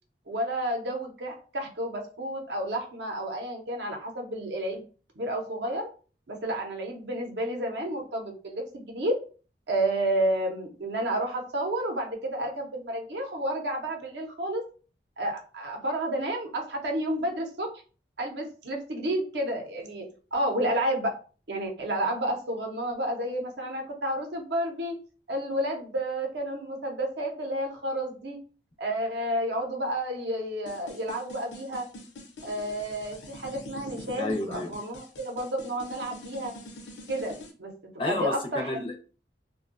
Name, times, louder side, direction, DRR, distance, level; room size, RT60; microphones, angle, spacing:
voice 1, 0.3-4.8 5.2-5.9 6.3-9.1 9.7-14.6 15.2-17.7 18.2-20.0 20.3-21.1 21.5-24.9 25.3-28.4 28.8-31.8 32.4-36.5 37.1-37.7 38.0-38.8, right 1 dB, 70° right, 0.6 m, -31 dB
sound 1, 30.7-37.5, left 1 dB, 80° left, 0.6 m, -44 dB
voice 2, 34.2-34.7 38.0-39.0, left 2 dB, 30° left, 0.4 m, -31 dB
2.5 x 2.2 x 2.4 m
head